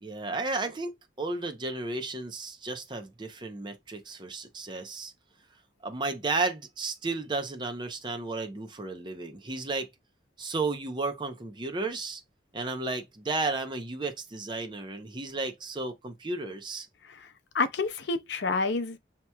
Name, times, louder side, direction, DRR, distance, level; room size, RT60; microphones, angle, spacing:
voice 1, 0.0-0.9 1.2-5.1 5.8-9.9 10.4-12.2 12.5-16.9, right 3 dB, 25° right, 0.6 m, -33 dB
voice 2, 17.5-19.0, left 3 dB, 85° left, 0.6 m, -29 dB
5.8 x 2.9 x 2.2 m
head